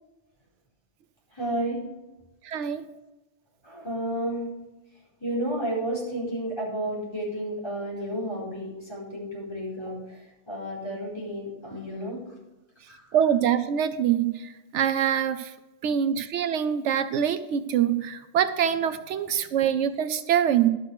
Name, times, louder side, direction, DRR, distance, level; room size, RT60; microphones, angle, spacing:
voice 1, 1.3-1.8 3.6-4.4 5.2-12.2 12.9-13.0 19.3-19.4, right 1 dB, 25° left, -6 dB, 4.7 m, -32 dB
voice 2, 2.4-2.8 13.1-15.5 15.8-20.7, right 9 dB, 80° right, 12 dB, 1.0 m, -24 dB
12.0 x 6.5 x 6.5 m, 1.0 s
omnidirectional pair, 1.2 m